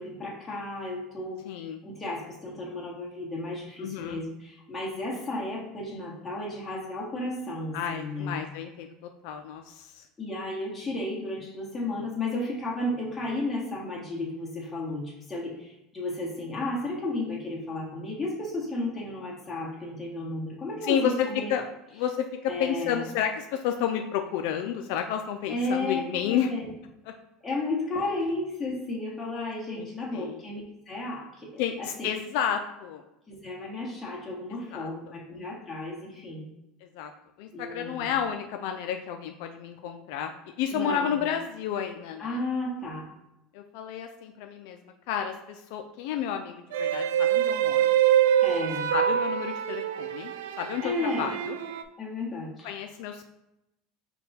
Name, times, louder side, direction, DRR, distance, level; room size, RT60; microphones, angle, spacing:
voice 1, 0.0-1.4 1.8-8.4 10.2-21.5 22.5-23.0 25.5-26.7 27.4-31.9 33.3-36.5 37.5-38.1 40.7-41.2 42.2-43.1 48.4-48.9 50.8-51.4 52.0-52.7, left 2 dB, 15° left, -4 dB, 1.5 m, -33 dB
voice 2, 1.5-1.8 3.8-4.2 7.7-10.1 20.8-21.7 21.9-26.5 27.1-27.2 29.7-30.4 31.6-33.0 34.7-34.9 36.8-37.1 37.4-40.3 40.6-42.4 43.5-44.8 45.1-47.9 48.9-51.6 52.6-53.3, left 9 dB, 70° left, 5 dB, 0.3 m, -31 dB
sound 1, 46.7-51.8, right 10 dB, 90° right, 0.3 m, -25 dB
5.3 x 2.3 x 4.1 m, 0.88 s
supercardioid pair, 125°, 0 cm